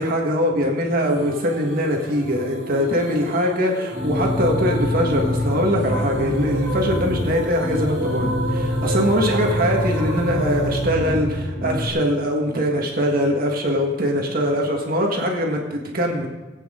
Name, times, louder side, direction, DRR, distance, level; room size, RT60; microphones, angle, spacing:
voice 1, 0.0-16.3, equal, 50° right, 0 dB, 1.8 m, -22 dB
sound 1, 1.1-12.0, right 1 dB, 75° right, 2.2 m, -32 dB
sound 2, 3.9-11.9, equal, 15° right, 2.4 m, -25 dB
19.0 x 8.7 x 3.8 m, 1.2 s
head